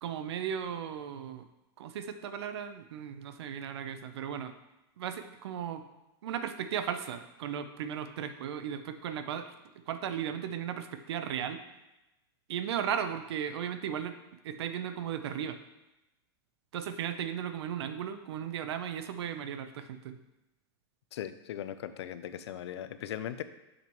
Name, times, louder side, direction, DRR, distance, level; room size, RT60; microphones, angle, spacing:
voice 1, 0.0-1.5 1.8-4.5 5.0-5.8 6.2-9.5 9.9-11.6 12.5-14.2 14.4-15.6 16.7-20.2, right 8 dB, 80° right, 10 dB, 0.7 m, -36 dB
voice 2, 21.1-23.4, left 10 dB, 90° left, 12 dB, 0.5 m, -39 dB
6.7 x 6.1 x 3.1 m, 0.98 s
supercardioid pair, 135°, 14 cm